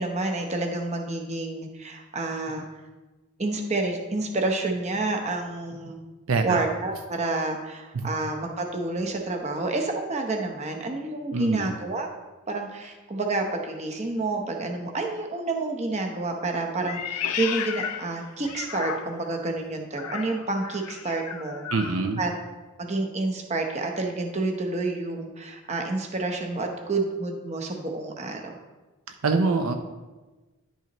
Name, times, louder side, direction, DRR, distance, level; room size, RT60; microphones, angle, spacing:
voice 1, 0.0-2.7 3.4-6.0 6.4-12.1 12.5-21.7 22.2-22.3 22.8-28.5, right 2 dB, 30° right, 3 dB, 0.8 m, -29 dB
voice 2, 6.3-6.6 7.9-8.1 11.3-11.7 21.7-22.2 29.2-29.7, right 4 dB, 65° right, 5 dB, 0.5 m, -24 dB
Meow, 16.8-19.4 19.9-22.0, left 8 dB, 85° left, 0.5 m, -34 dB
10.5 x 5.6 x 3.0 m, 1.2 s
head